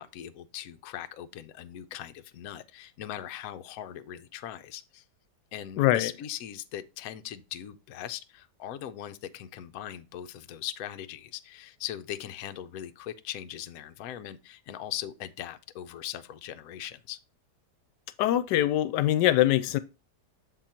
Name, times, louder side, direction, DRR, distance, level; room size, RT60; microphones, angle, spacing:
voice 1, 0.0-5.0 5.5-17.2, left 11 dB, 70° left, 1.0 m, -40 dB
voice 2, 5.8-6.1 18.2-19.8, left 13 dB, 85° left, 1.2 m, -23 dB
7.2 x 3.9 x 4.2 m
omnidirectional pair, 1.8 m